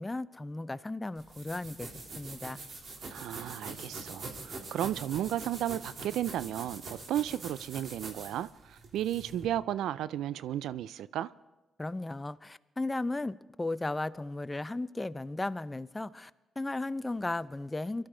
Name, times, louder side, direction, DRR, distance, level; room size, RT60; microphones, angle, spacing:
voice 1, 0.0-2.6 11.8-16.3 16.6-18.1, left 2 dB, 20° left, 0.6 m, -35 dB
sound 1, 1.2-9.5, right 3 dB, 60° right, 3.1 m, -44 dB
voice 2, 3.1-11.3, right 12 dB, 75° right, 0.4 m, -34 dB
23.5 x 12.5 x 3.8 m
hypercardioid pair, 45°, 0 cm